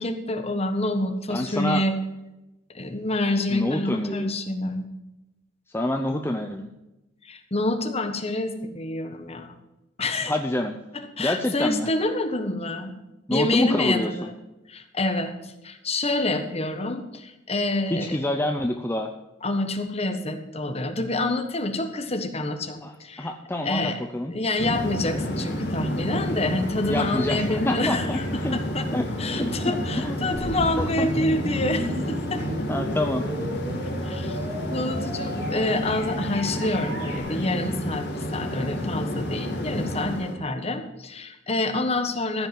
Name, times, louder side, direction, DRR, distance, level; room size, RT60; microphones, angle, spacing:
voice 1, 0.0-1.9 2.7-4.8 7.2-9.5 10.0-10.3 10.9-12.9 13.3-14.3 14.7-18.2 19.4-23.3 23.6-24.0 24.3-28.2 28.5-28.9 29.2-32.4 34.0-34.4 34.7-38.1 38.3-42.5, left 2 dB, 35° left, 6 dB, 1.4 m, -27 dB
voice 2, 1.3-1.8 3.5-4.3 5.7-6.7 10.2-10.8 11.2-11.9 13.3-14.3 17.9-19.1 22.8-24.3 26.8-28.6 28.9-29.1 29.4-30.2 30.8-31.1 32.7-33.3, left 1 dB, 10° left, 4 dB, 0.7 m, -27 dB
sound 1, 24.6-40.3, equal, 65° left, 2.4 m, -30 dB
sound 2, 30.3-37.2, right 1 dB, 55° right, 2.9 m, -36 dB
14.5 x 5.7 x 7.6 m, 0.97 s
head